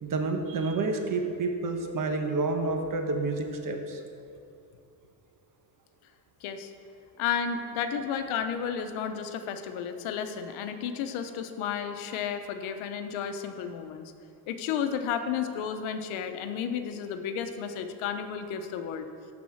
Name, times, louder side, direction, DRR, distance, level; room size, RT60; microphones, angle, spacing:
voice 1, 0.0-4.0, right 3 dB, 45° right, 4 dB, 1.2 m, -29 dB
voice 2, 6.4-6.7 7.2-14.1 14.5-19.1, left 7 dB, 90° left, 8 dB, 1.0 m, -32 dB
12.5 x 4.4 x 7.2 m, 2.5 s
cardioid pair, 130°, 47 cm